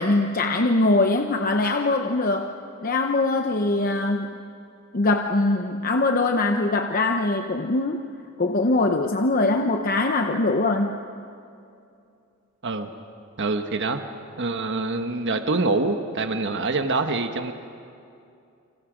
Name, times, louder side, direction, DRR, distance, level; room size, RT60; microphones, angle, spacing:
voice 1, 0.0-2.5 2.8-4.4 4.9-8.0 8.4-11.0, left 2 dB, 40° left, 4 dB, 0.8 m, -22 dB
voice 2, 13.4-14.0 14.4-17.5, right 3 dB, 55° right, 7 dB, 1.3 m, -25 dB
29.0 x 26.5 x 5.1 m, 2.5 s
head